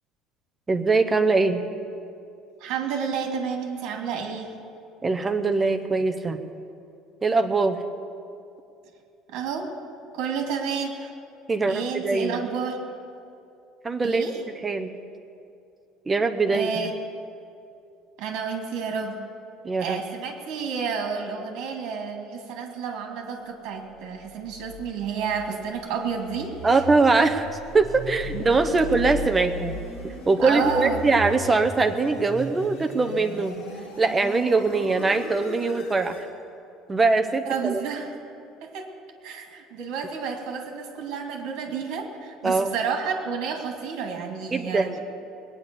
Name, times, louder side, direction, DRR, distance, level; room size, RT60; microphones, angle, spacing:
voice 1, 0.7-1.6 5.0-6.4 7.2-7.8 11.5-12.4 13.8-14.3 14.6-14.9 16.1-16.9 19.6-20.0 26.6-27.5 27.7-33.6 34.0-36.2 36.9-37.8 42.4-42.8 44.5-45.0, right 3 dB, 15° right, 6 dB, 0.7 m, -22 dB
voice 2, 2.6-4.5 9.3-9.7 10.1-11.1 11.7-12.8 14.0-14.4 16.5-16.9 18.2-19.2 19.8-26.8 28.3-28.4 30.4-31.0 37.5-38.1 38.6-38.9 39.2-44.9, right 6 dB, 60° right, 3 dB, 2.4 m, -30 dB
sound 1, 24.1-36.3, left 2 dB, 70° left, 4.0 m, -38 dB
20.0 x 9.7 x 6.9 m, 2.5 s
cardioid pair, 175°, 0 cm